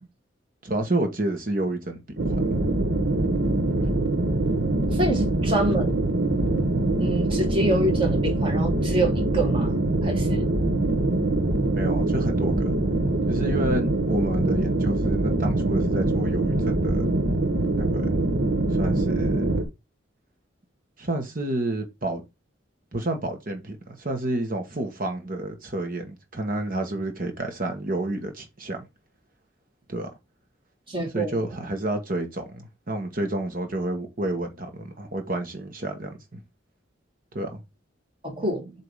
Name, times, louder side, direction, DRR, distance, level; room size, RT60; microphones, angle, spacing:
voice 1, 0.6-2.6 3.8-3.9 11.7-12.8 13.3-17.0 17.8-18.3 18.7-19.6 21.0-22.3 22.9-28.8 29.9-30.1 31.1-36.4 37.3-37.6, right 1 dB, 50° right, 1.6 m, -30 dB
sound 1, 2.2-19.6, right 2 dB, 65° right, 1.0 m, -24 dB
voice 2, 4.9-5.9 7.0-9.7 10.0-10.4 30.9-31.4 38.2-38.7, right 1 dB, 25° right, 1.9 m, -26 dB
7.6 x 2.9 x 4.9 m
head